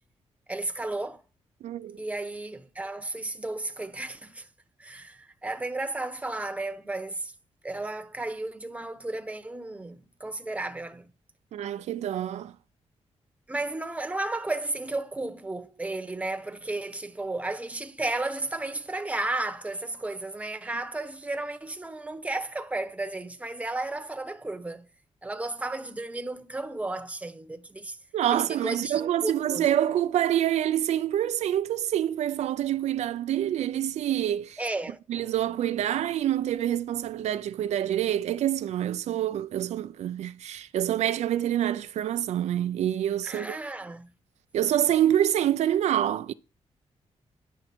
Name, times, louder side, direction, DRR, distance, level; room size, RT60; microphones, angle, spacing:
voice 1, 0.5-1.2 2.0-4.5 4.8-7.3 7.6-11.1 13.5-24.9 25.2-28.0 28.3-29.7 34.6-35.0 43.2-44.1, right 2 dB, 10° right, 0.9 m, -33 dB
voice 2, 1.6-2.0 11.5-12.5 28.1-34.6 35.1-43.6 44.5-46.3, right 11 dB, 80° right, 0.4 m, -26 dB
9.9 x 6.2 x 4.4 m
cardioid pair, 100°, 11 cm